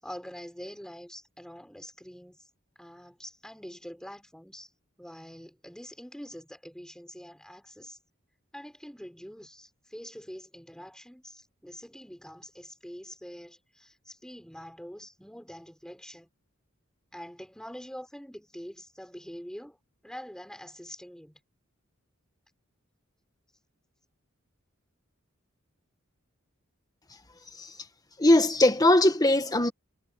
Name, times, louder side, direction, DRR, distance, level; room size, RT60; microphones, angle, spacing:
voice 1, 0.0-2.4 2.8-4.7 5.0-8.0 8.5-16.3 17.1-19.8 20.0-21.4, equal, 5° left, 5.8 m, -45 dB
voice 2, 28.2-29.7, left 1 dB, 20° left, 1.6 m, -20 dB
head